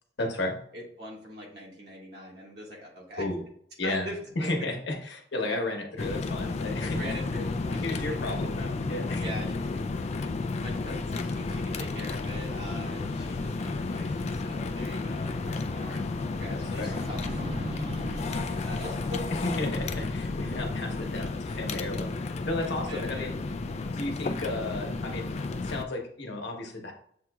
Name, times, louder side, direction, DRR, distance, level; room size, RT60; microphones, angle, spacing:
voice 1, 0.2-0.6 3.2-3.4 3.8-4.1 4.4-7.1 7.8-9.2 16.5-17.0 19.6-22.1 22.5-23.3 23.9-25.3 25.6-26.9, left 2 dB, 70° left, 1 dB, 1.1 m, -33 dB
voice 2, 0.7-3.3 3.8-4.7 6.9-8.5 9.2-9.7 10.6-17.3 18.2-19.2 22.6-23.5, equal, 65° right, -3 dB, 1.9 m, -42 dB
sound 1, 6.0-25.8, left 3 dB, 40° left, 0.3 m, -32 dB
sound 2, 11.9-14.8 15.2-15.3 16.7-21.8, equal, 35° right, 0.6 m, -42 dB
7.3 x 2.9 x 2.3 m, 0.65 s
head